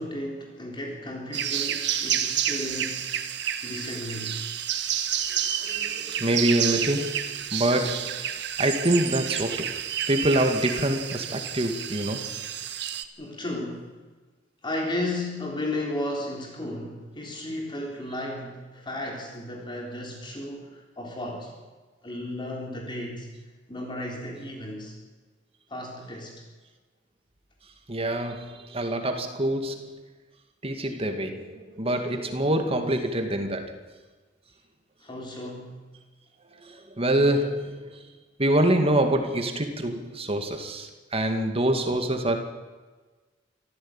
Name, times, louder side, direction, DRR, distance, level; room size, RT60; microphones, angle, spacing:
voice 1, 0.0-3.2 3.6-4.4 12.5-12.6 13.2-13.9 14.6-21.5 22.0-23.3 23.7-24.9 25.7-26.4 35.0-35.8, left 1 dB, 25° left, 0 dB, 3.8 m, -34 dB
sound 1, 1.3-13.0, right 9 dB, 65° right, 1.5 m, -30 dB
voice 2, 5.3-8.3 8.6-9.7 10.1-12.2 27.9-29.9 30.6-33.8 36.6-38.0 38.4-42.4, right 1 dB, 30° right, 6 dB, 2.3 m, -26 dB
24.5 x 15.0 x 9.0 m, 1.3 s
head